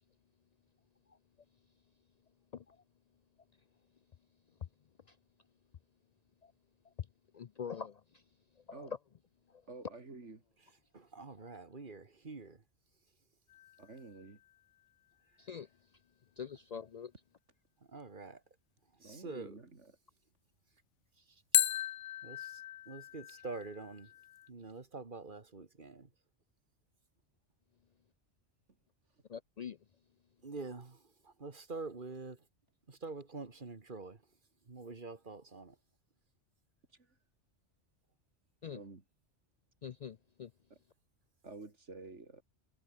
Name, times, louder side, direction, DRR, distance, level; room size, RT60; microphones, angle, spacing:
voice 1, 7.3-8.0 8.7-8.9 15.4-15.7 16.4-17.1 29.3-29.8 38.6-38.8 39.8-40.5, left 7 dB, 60° left, 0.4 m, -44 dB
voice 2, 9.7-10.4 13.8-14.4 19.0-19.9 36.9-37.1 38.7-39.0 40.7-40.8 41.4-42.4, right 3 dB, 85° right, 3.5 m, -50 dB
voice 3, 10.9-12.6 17.9-18.4 19.0-19.6 21.3-21.4 22.2-24.1 24.5-26.1 30.4-32.4 32.9-34.2 34.7-35.8, right 3 dB, 45° right, 2.0 m, -46 dB
sound 1, 13.5-14.5 21.5-24.5, left 12 dB, 90° left, 1.0 m, -36 dB
omnidirectional pair, 1.2 m